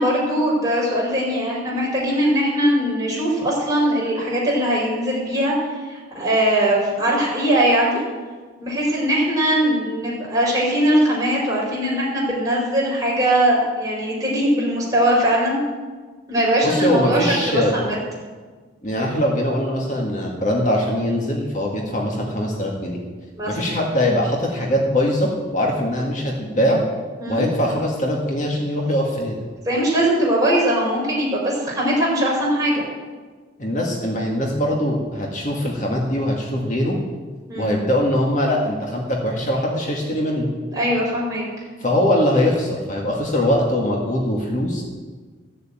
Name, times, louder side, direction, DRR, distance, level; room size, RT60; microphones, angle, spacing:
voice 1, 0.0-8.0 8.6-15.6 16.3-18.0 23.4-23.7 27.2-27.4 29.7-32.8 37.5-37.7 40.7-41.5, right 1 dB, 20° right, -5 dB, 4.6 m, -20 dB
voice 2, 16.6-17.8 18.8-23.0 23.5-26.8 27.3-29.4 33.6-37.0 37.6-40.5 41.8-44.8, left 1 dB, 40° left, -1 dB, 1.9 m, -22 dB
14.5 x 7.2 x 8.9 m, 1.4 s
head